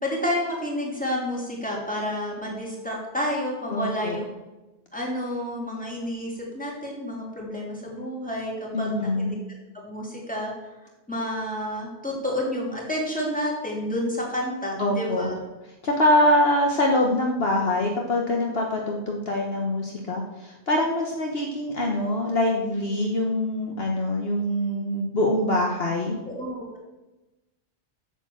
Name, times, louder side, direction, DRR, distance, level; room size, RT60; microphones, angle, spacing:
voice 1, 0.0-4.3 4.9-9.3 9.8-10.5 11.1-15.3 26.3-26.9, left 1 dB, 5° left, -3 dB, 3.1 m, -30 dB
voice 2, 3.7-4.2 8.7-9.4 14.8-15.3 15.8-26.2, left 1 dB, 55° left, 1 dB, 1.4 m, -24 dB
8.8 x 7.4 x 7.2 m, 1.1 s
omnidirectional pair, 1.2 m